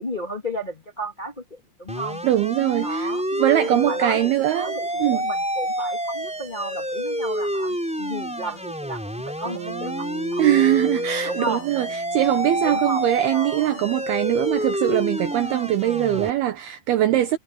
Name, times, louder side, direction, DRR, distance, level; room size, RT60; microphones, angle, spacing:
voice 1, 0.0-2.2 2.8-3.2 3.6-10.4 11.2-11.7 12.6-13.8, right 1 dB, 70° left, 0.4 m, -33 dB
sound 1, 1.9-16.3, equal, ahead, 4.9 m, -28 dB
voice 2, 2.2-5.2 10.4-17.4, right 13 dB, 70° right, 2.9 m, -22 dB
Bass guitar, 9.4-13.8, right 5 dB, 35° right, 3.9 m, -40 dB
omnidirectional pair, 5.0 m